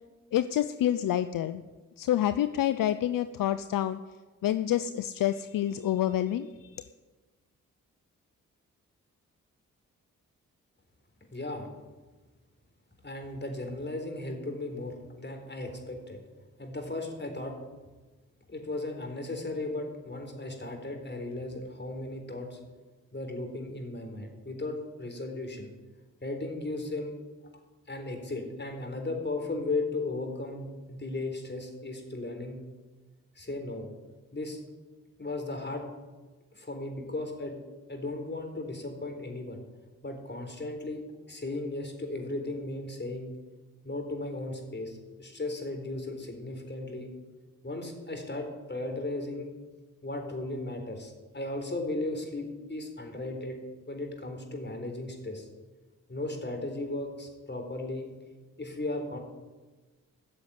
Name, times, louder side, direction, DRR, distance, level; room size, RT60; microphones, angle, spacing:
voice 1, 0.3-1.6 2.0-4.0 4.4-6.8, left 12 dB, 70° left, 12 dB, 0.6 m, -28 dB
voice 2, 11.3-11.7 13.0-16.2 16.6-17.5 18.5-22.6 23.1-25.7 26.2-27.1 27.9-32.6 33.4-33.9 34.3-34.6 35.2-35.8 36.5-37.6 37.9-39.6 40.0-41.0 41.3-43.3 43.8-47.1 47.6-49.5 50.0-53.6 53.9-55.5 56.1-58.1 58.6-59.2, left 2 dB, 30° left, 4 dB, 4.2 m, -36 dB
15.0 x 6.9 x 9.4 m, 1.3 s
supercardioid pair, 45°, 34 cm